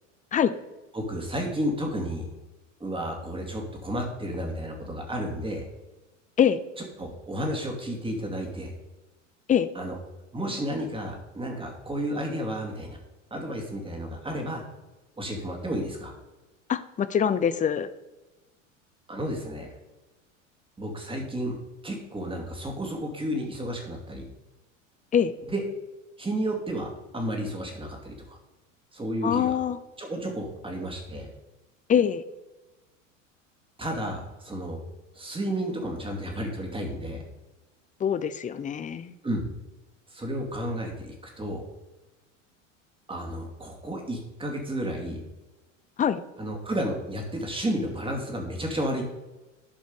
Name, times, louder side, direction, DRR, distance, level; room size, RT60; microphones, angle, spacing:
voice 1, 0.9-2.3 2.8-5.6 6.8-8.7 9.7-9.9 10.3-13.0 13.3-14.6 15.2-16.1 19.1-19.7 20.8-21.6 21.8-24.2 25.5-25.7 26.2-26.9 27.1-28.4 28.9-29.5 30.0-31.3 33.8-34.8 35.1-37.2 39.2-39.5 40.1-41.6 43.1-45.2 46.4-49.0, equal, 15° right, 1 dB, 2.6 m, -32 dB
voice 2, 16.7-17.9 25.1-25.3 29.2-29.8 31.9-32.2 38.0-39.1 46.0-46.2, left 8 dB, 20° left, 14 dB, 0.6 m, -24 dB
11.5 x 5.2 x 5.3 m, 1.1 s
hypercardioid pair, 80°, 39 cm